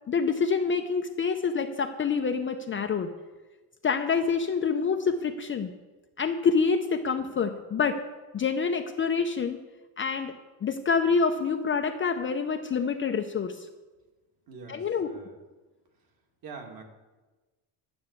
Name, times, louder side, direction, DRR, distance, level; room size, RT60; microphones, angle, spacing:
voice 1, 0.1-3.1 3.8-5.7 6.2-8.0 8.3-9.6 10.0-10.4 10.6-13.7 14.7-15.1, left 5 dB, 25° left, 5 dB, 0.6 m, -27 dB
voice 2, 14.5-15.4 16.4-16.8, right 4 dB, 45° right, 2 dB, 2.3 m, -44 dB
11.5 x 7.0 x 8.3 m, 1.2 s
cardioid pair, 140°, 49 cm